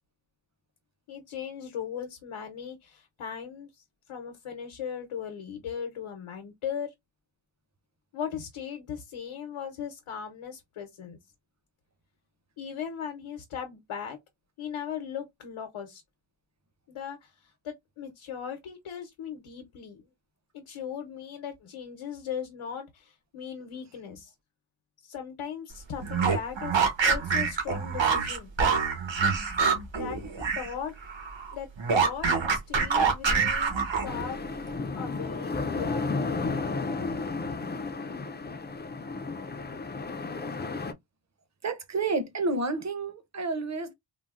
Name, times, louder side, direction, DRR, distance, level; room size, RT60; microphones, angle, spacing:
voice 1, 1.1-6.9 8.1-11.2 12.6-14.2 14.6-16.0 16.9-20.0 20.5-24.3 25.0-28.5 30.0-30.2 30.6-30.9 31.5-33.7 34.0-34.4 34.9-36.6, left 8 dB, 80° left, 0.8 m, -38 dB
sound 1, 26.0-30.7 31.0-34.3, right 5 dB, 65° right, 1.2 m, -26 dB
sound 2, 34.0-40.9, left 3 dB, 25° left, 0.3 m, -33 dB
voice 2, 41.6-43.9, right 3 dB, 35° right, 0.7 m, -30 dB
3.8 x 2.0 x 2.3 m
wide cardioid pair, 120°, 48 cm